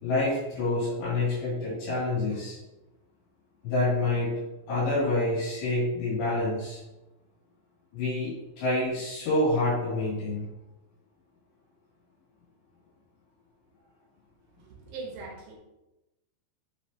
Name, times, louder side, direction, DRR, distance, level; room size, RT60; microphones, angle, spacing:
voice 1, 0.0-2.6 3.6-4.3 4.7-6.8 7.9-10.5, left 2 dB, 70° left, -8 dB, 4.4 m, -27 dB
voice 2, 14.6-15.6, right 3 dB, 65° right, -2 dB, 2.5 m, -41 dB
7.1 x 6.5 x 2.8 m, 0.98 s
omnidirectional pair, 5.2 m